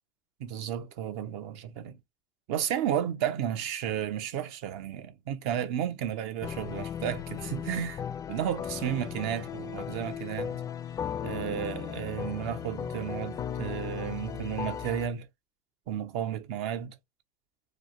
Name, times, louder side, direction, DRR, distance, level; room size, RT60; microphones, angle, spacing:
voice 1, 0.4-2.0 2.5-8.0 8.3-10.6 11.2-15.3 15.9-17.0, right 10 dB, 65° right, 0.7 m, -33 dB
sound 1, 6.4-15.1, left 8 dB, 35° left, 0.4 m, -36 dB
3.3 x 2.1 x 2.5 m
hypercardioid pair, 85°, 11 cm